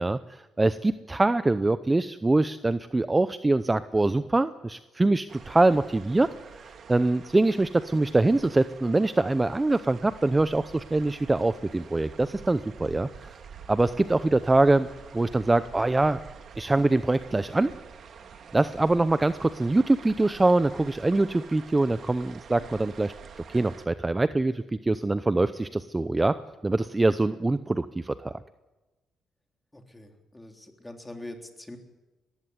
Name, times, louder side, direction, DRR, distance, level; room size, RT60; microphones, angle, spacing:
voice 1, 0.0-6.3 6.5-13.3 13.7-14.9 15.1-16.2 16.6-17.7 18.5-23.1 23.5-26.4 26.6-28.4, right 2 dB, 15° right, 13 dB, 0.7 m, -24 dB
sound 1, 5.3-23.9, right 6 dB, 60° right, 2.0 m, -47 dB
voice 2, 29.7-31.8, left 1 dB, 10° left, 3 dB, 3.6 m, -43 dB
20.0 x 15.5 x 9.6 m, 1.1 s
cardioid pair, 90°, 0 cm